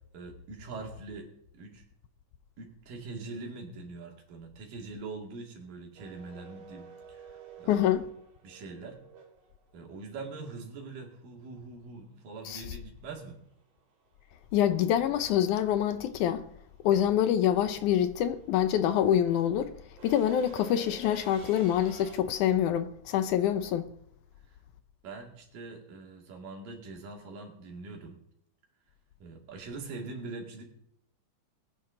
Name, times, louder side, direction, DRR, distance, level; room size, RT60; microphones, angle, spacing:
voice 1, 0.1-1.3 1.5-1.8 2.6-8.0 8.4-9.0 9.7-13.4 25.0-28.2 29.2-30.6, right 3 dB, 80° right, 4.1 m, -43 dB
sound 1, 6.0-10.0 12.4-12.5 13.8-14.1 14.4-22.2, right 7 dB, 65° right, 4.1 m, -51 dB
voice 2, 7.7-8.0 12.5-12.6 14.5-16.4 16.8-19.7 20.0-23.9, left 10 dB, 75° left, 2.1 m, -26 dB
20.5 x 9.9 x 3.9 m
omnidirectional pair, 3.9 m